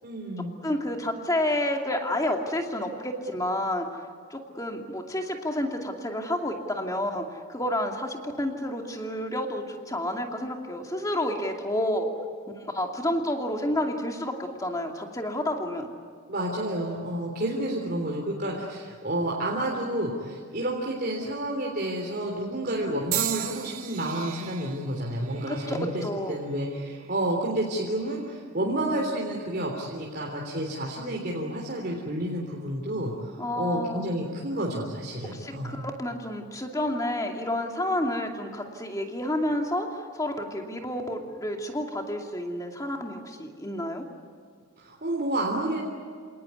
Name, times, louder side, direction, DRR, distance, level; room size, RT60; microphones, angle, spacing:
voice 1, 0.0-0.5 16.3-35.8 44.8-45.8, right 1 dB, 45° right, -1 dB, 3.5 m, -30 dB
voice 2, 0.6-3.9 4.3-12.1 12.6-15.9 25.5-26.4 33.4-34.1 35.3-44.1, left 1 dB, 15° left, 2 dB, 2.6 m, -30 dB
sound 1, 23.1-27.2 28.0-28.4 29.3-29.5, right 13 dB, 70° right, 1.9 m, -36 dB
28.0 x 19.0 x 9.7 m, 2.1 s
head